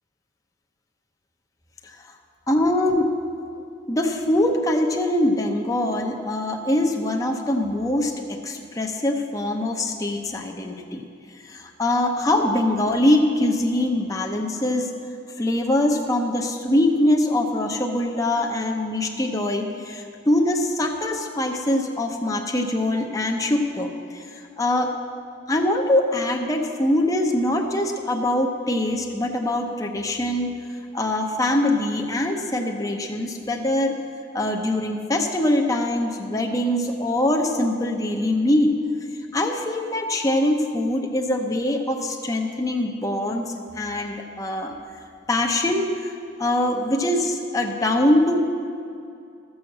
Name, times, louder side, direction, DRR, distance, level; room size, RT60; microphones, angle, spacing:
voice 1, 2.5-3.1 3.9-11.1 11.4-14.9 15.4-24.9 25.5-30.5 30.9-34.0 34.3-38.8 39.3-44.7 45.3-48.5, left 1 dB, 20° left, 2 dB, 0.7 m, -23 dB
13.5 x 6.4 x 7.2 m, 2.5 s
head